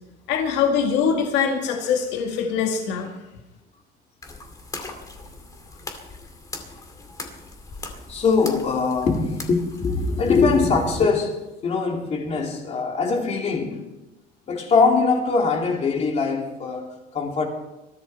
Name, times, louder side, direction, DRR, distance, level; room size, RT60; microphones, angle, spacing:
voice 1, 0.3-3.1, left 6 dB, 70° left, 2.0 m, -23 dB
sound 1, 4.2-11.0, left 2 dB, 20° left, 2.2 m, -40 dB
voice 2, 8.1-13.8 14.5-17.5, left 4 dB, 35° left, 3.0 m, -22 dB
21.5 x 14.0 x 4.4 m
cardioid pair, 155°, 19 cm